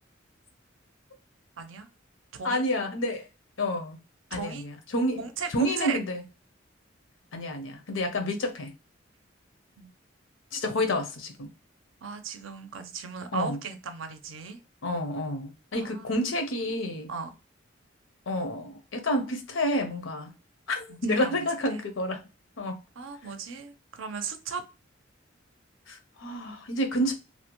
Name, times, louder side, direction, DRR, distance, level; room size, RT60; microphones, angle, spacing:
voice 1, 1.6-1.9 2.3-2.6 4.3-4.7 5.2-6.0 9.8-9.9 12.0-14.6 15.8-16.0 17.1-17.3 20.9-21.4 21.7-21.8 23.0-24.6, right 5 dB, 85° right, 0.5 m, -37 dB
voice 2, 2.4-3.3 3.6-4.0 4.3-5.2 5.5-6.2 7.3-8.7 10.5-11.5 13.3-13.6 14.8-17.1 18.3-20.3 20.7-22.2 22.6-22.7 25.9-27.1, left 1 dB, 85° left, 0.7 m, -29 dB
2.8 x 2.1 x 2.9 m
head